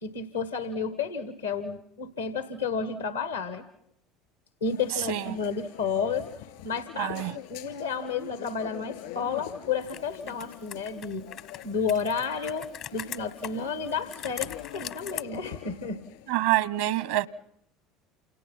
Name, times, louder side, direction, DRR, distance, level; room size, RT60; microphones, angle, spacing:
voice 1, 0.0-3.6 4.6-6.3 6.6-11.3 11.6-16.0, left 5 dB, 90° left, 1.6 m, -31 dB
sound 1, 4.6-16.5, left 13 dB, 75° left, 2.9 m, -45 dB
voice 2, 5.0-5.4 7.0-7.4 16.3-17.3, right 15 dB, 75° right, 0.9 m, -26 dB
Computer keyboard, 9.8-15.2, left 10 dB, 55° left, 1.0 m, -41 dB
28.5 x 28.5 x 5.9 m
hypercardioid pair, 70°, 0 cm